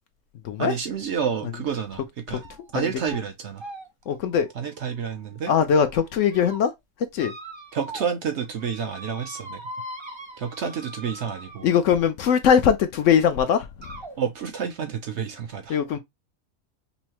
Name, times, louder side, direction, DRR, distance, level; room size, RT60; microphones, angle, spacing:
voice 1, 0.6-2.4 2.7-3.6 4.6-5.5 7.7-9.6 10.4-11.7 14.2-15.8, right 7 dB, 65° right, 0.8 m, -29 dB
sound 1, 1.7-2.0 2.4-2.7 3.0-3.2 3.6-5.5 6.0-6.6 7.2-8.2 8.4-12.0 13.0-13.1 13.8-14.2, right 1 dB, 30° right, 0.6 m, -41 dB
voice 2, 4.1-4.5 5.5-6.7 7.1-7.3 11.6-13.9 15.7-16.0, left 7 dB, 65° left, 0.8 m, -21 dB
5.4 x 2.0 x 2.9 m
omnidirectional pair, 1.5 m